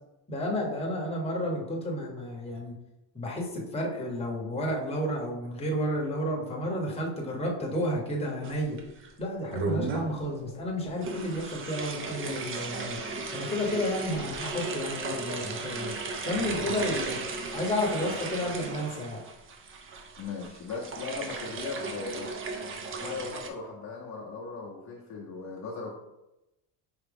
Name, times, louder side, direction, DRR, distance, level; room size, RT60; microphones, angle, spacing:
voice 1, 0.3-2.7 3.1-8.8 9.2-13.0 13.3-15.9 16.2-17.2 17.5-19.2, equal, 15° left, -2 dB, 0.9 m, -31 dB
sound 1, 8.4-9.1 9.5-10.2 11.0-23.5, right 3 dB, 30° right, 0.4 m, -35 dB
voice 2, 20.2-22.4 23.0-25.9, left 4 dB, 35° left, -3 dB, 0.6 m, -38 dB
4.8 x 2.9 x 3.4 m, 0.94 s
cardioid pair, 135°, 47 cm